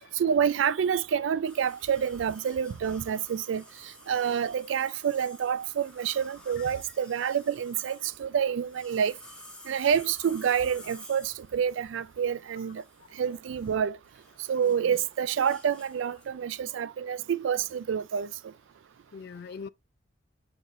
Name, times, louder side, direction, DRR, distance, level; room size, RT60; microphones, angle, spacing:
voice 1, 0.1-9.1 9.6-12.8 13.1-14.0 14.5-18.5, right 7 dB, 80° right, 0.3 m, -28 dB
sound 1, 1.4-16.4, left 1 dB, 5° left, 1.3 m, -52 dB
voice 2, 14.6-15.0 19.1-19.7, left 5 dB, 55° left, 0.3 m, -42 dB
6.5 x 3.0 x 2.5 m
head